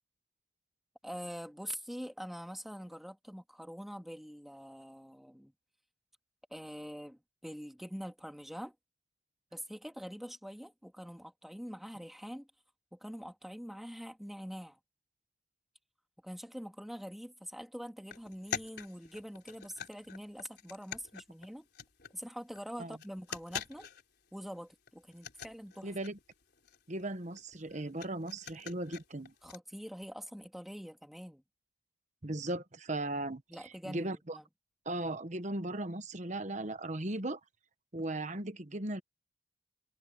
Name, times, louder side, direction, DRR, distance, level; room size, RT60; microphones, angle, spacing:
voice 1, 1.0-5.5 6.5-8.8 9.5-12.5 12.9-14.8 16.2-21.6 22.1-23.9 24.3-25.9 29.4-31.4 33.5-34.4, equal, ahead, 2.3 m, -44 dB
sound 1, 18.1-22.3 22.6-22.7 22.9-24.3 24.6-24.7 24.9-29.6, left 7 dB, 55° left, 4.3 m, -45 dB
voice 2, 25.8-26.2 26.9-29.3 32.2-34.4 34.8-37.4 37.9-39.0, right 1 dB, 35° right, 1.2 m, -37 dB
head